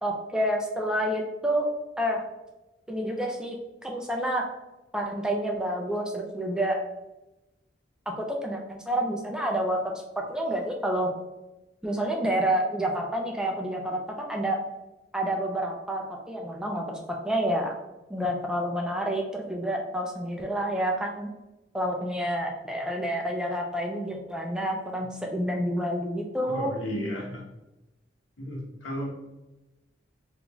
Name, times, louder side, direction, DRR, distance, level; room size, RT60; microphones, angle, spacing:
voice 1, 0.0-1.7 2.0-2.2 2.9-3.6 3.8-4.4 4.9-6.8 8.2-10.0 10.3-11.1 11.8-14.6 15.1-17.0 17.2-17.7 18.1-21.3 21.7-26.7, right 1 dB, 5° right, 0 dB, 0.3 m, -28 dB
voice 2, 26.5-27.4 28.4-29.1, equal, 90° left, -2 dB, 0.9 m, -33 dB
3.5 x 2.5 x 2.9 m, 1.0 s
head